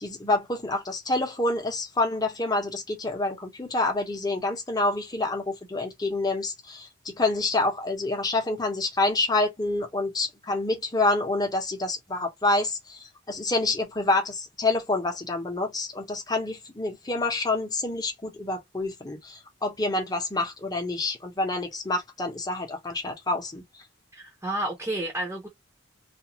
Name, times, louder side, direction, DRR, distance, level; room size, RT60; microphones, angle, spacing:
voice 1, 0.0-23.6, left 2 dB, 20° left, 0.8 m, -27 dB
voice 2, 24.1-25.5, right 1 dB, 15° right, 0.7 m, -31 dB
2.5 x 2.3 x 2.8 m
head